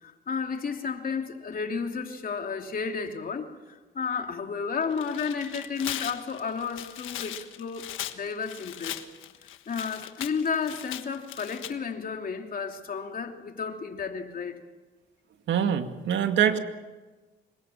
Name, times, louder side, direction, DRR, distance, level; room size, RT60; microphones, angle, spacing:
voice 1, 0.0-9.0 9.7-14.6, left 5 dB, 45° left, 3.0 m, -32 dB
Tearing, 4.8-11.7, left 12 dB, 90° left, 1.4 m, -39 dB
voice 2, 15.5-16.6, right 9 dB, 70° right, 2.3 m, -24 dB
27.0 x 22.5 x 7.3 m
cardioid pair, 90°, 20 cm